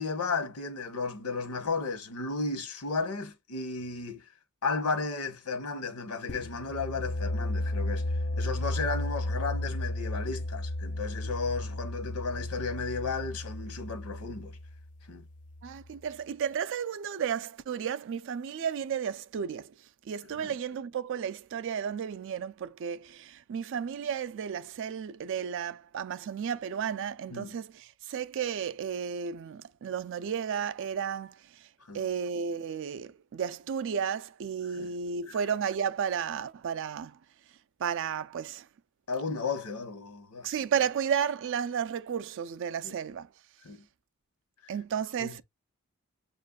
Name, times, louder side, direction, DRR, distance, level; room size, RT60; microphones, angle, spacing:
voice 1, 0.0-4.2 4.6-8.1 8.3-14.6 15.1-15.3 20.4-20.5 27.3-27.6 31.8-32.0 34.7-34.9 35.3-35.4 39.1-40.5 42.8-42.9 43.6-43.9 44.6-44.7 45.2-45.4, left 4 dB, 85° left, 1.0 m, -34 dB
sound 1, 6.3-15.9, left 1 dB, 35° left, 0.3 m, -34 dB
voice 2, 15.6-19.7 20.1-31.7 31.9-37.2 37.8-38.7 40.4-43.3 44.7-45.4, right 7 dB, 55° right, 0.3 m, -33 dB
7.3 x 2.5 x 2.3 m
head